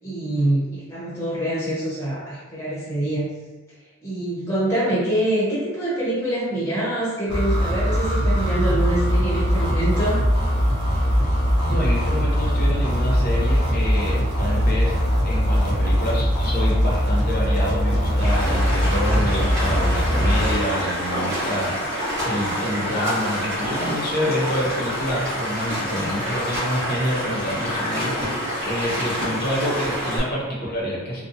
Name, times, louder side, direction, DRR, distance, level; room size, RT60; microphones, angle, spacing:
voice 1, 0.0-3.3 4.0-10.2, right 1 dB, 15° left, -9 dB, 0.8 m, -25 dB
sound 1, 7.3-20.6, equal, 20° right, 0.7 m, -21 dB
voice 2, 11.6-15.0 15.2-31.2, equal, 45° left, -4 dB, 0.7 m, -27 dB
Stream, 18.2-30.2, equal, 60° right, 1.1 m, -27 dB
2.7 x 2.2 x 2.6 m, 1.2 s
head